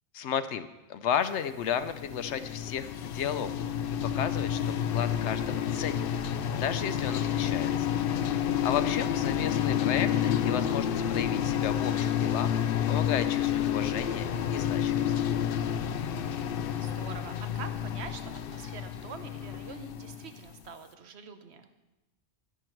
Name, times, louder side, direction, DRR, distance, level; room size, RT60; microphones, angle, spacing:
voice 1, 0.1-3.7 4.1-6.2 6.5-7.9 8.6-12.6 12.9-15.1, left 8 dB, 85° left, 12 dB, 0.9 m, -33 dB
sound 1, 1.5-20.6, left 9 dB, 60° left, 0.7 m, -30 dB
voice 2, 7.0-7.4 16.1-21.7, right 6 dB, 70° right, 8 dB, 1.2 m, -46 dB
11.5 x 11.0 x 4.6 m, 1.0 s
omnidirectional pair, 1.2 m